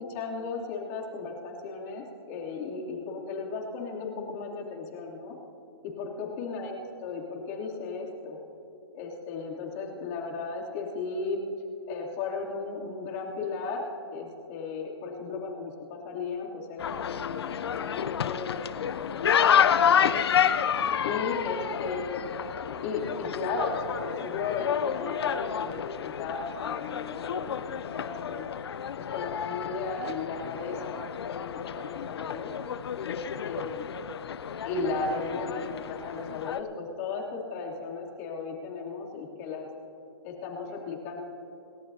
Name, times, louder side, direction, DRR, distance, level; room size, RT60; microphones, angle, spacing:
voice 1, 0.1-5.4 6.0-8.4 8.9-11.4 11.9-13.8 14.1-20.2 21.0-22.3 22.8-28.5 29.0-32.5 33.0-33.9 34.6-39.7 40.2-41.2, left 4 dB, 35° left, -3 dB, 3.0 m, -35 dB
sound 1, 16.8-36.6, left 8 dB, 75° left, 0.6 m, -30 dB
28.5 x 13.5 x 2.8 m, 2.9 s
hypercardioid pair, 155°, 14 cm